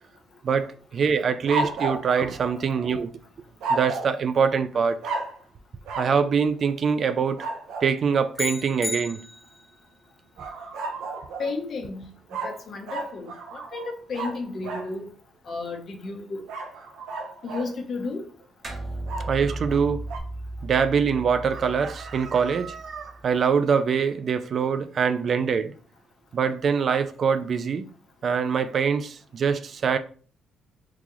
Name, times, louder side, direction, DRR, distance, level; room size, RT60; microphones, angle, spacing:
voice 1, 0.4-3.1 3.7-5.1 6.0-7.5 7.8-9.3 19.3-20.0 20.6-25.7 26.3-27.9 28.2-30.0, right 6 dB, 55° right, 0.3 m, -24 dB
sound 1, 1.5-3.0 3.6-4.2 5.0-5.4 5.9-6.2 7.4-7.9 10.4-11.6 12.3-14.9 16.5-17.7 19.1-20.2, right 3 dB, 85° right, 0.7 m, -33 dB
sound 2, 8.4-9.8, left 2 dB, 25° left, 0.7 m, -33 dB
voice 2, 11.4-12.1 12.4-15.1 15.5-16.4 17.4-18.3, left 3 dB, 55° left, 0.9 m, -33 dB
sound 3, 18.6-23.4, right 1 dB, 35° right, 0.9 m, -36 dB
3.8 x 2.3 x 3.0 m
cardioid pair, 90°, 0 cm